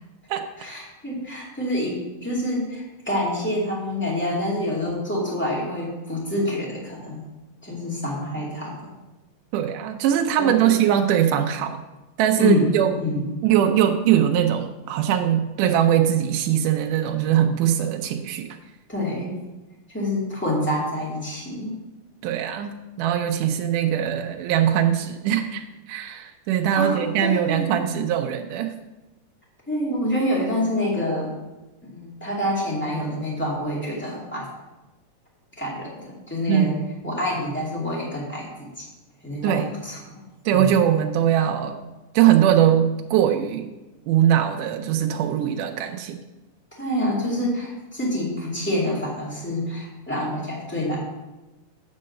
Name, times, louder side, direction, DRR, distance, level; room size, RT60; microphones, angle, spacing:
voice 1, 0.6-7.2 7.6-8.8 10.4-10.7 12.4-13.4 18.9-19.4 19.9-21.7 26.7-27.7 29.7-31.4 31.8-34.5 35.6-36.7 37.0-38.8 39.2-40.0 40.5-40.7 46.8-51.0, left 1 dB, 5° left, -5 dB, 1.6 m, -27 dB
voice 2, 9.5-11.8 12.2-12.9 13.4-18.6 22.2-28.7 36.5-36.9 39.4-39.7 40.5-41.8 42.1-43.7 44.1-46.2, right 10 dB, 85° right, 4 dB, 2.1 m, -21 dB
8.5 x 4.6 x 6.5 m, 1.1 s
omnidirectional pair, 3.7 m